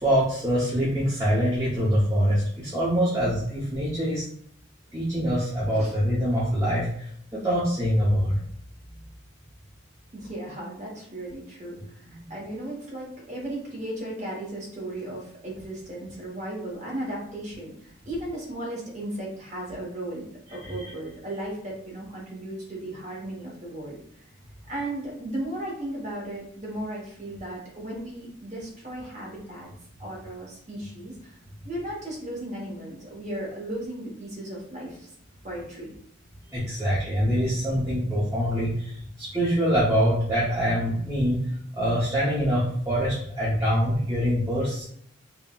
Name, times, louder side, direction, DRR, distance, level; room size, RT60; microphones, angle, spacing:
voice 1, 0.0-4.2 4.9-7.1 7.3-8.3 20.6-20.9 36.5-41.4 41.7-44.8, equal, 15° right, -9 dB, 0.5 m, -24 dB
voice 2, 10.1-24.2 24.7-29.7 30.0-31.4 31.6-35.1 35.4-35.9, right 1 dB, 35° right, -4 dB, 0.9 m, -36 dB
3.7 x 2.0 x 2.2 m, 0.67 s
head